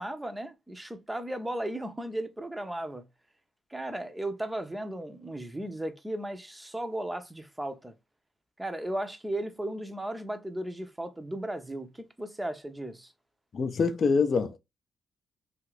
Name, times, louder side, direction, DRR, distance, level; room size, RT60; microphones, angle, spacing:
voice 1, 0.0-3.0 3.7-7.9 8.6-13.1, right 1 dB, 10° right, 0.5 m, -35 dB
voice 2, 13.5-14.6, left 4 dB, 45° left, 0.5 m, -25 dB
2.7 x 2.4 x 3.1 m
cardioid pair, 90°, 0 cm